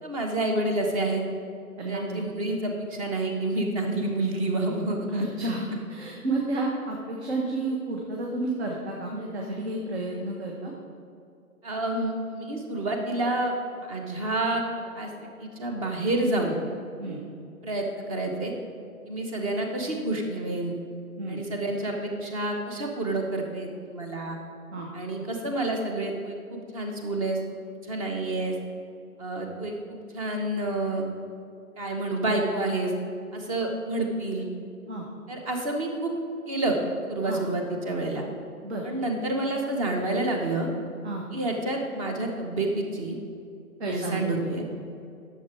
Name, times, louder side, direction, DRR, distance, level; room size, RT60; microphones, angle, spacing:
voice 1, 0.0-1.2 1.9-5.5 11.6-13.5 13.9-14.6 14.9-16.6 17.6-18.5 19.1-20.7 21.3-24.4 24.9-27.4 27.9-28.5 29.2-31.1 31.8-32.9 33.3-34.5 35.3-36.1 36.5-36.7 37.1-38.2 38.8-40.7 41.3-43.2 43.8-44.6, right 2 dB, 25° right, 2 dB, 1.1 m, -29 dB
voice 2, 1.8-2.3 5.1-10.7 17.0-17.2 21.2-21.4 24.7-24.9 34.9-35.0 37.2-37.4 38.6-38.8 41.0-41.2 43.8-44.5, right 2 dB, 45° right, -1 dB, 1.3 m, -31 dB
10.5 x 7.0 x 4.5 m, 2.5 s
figure-of-eight pair, 135°, 45 cm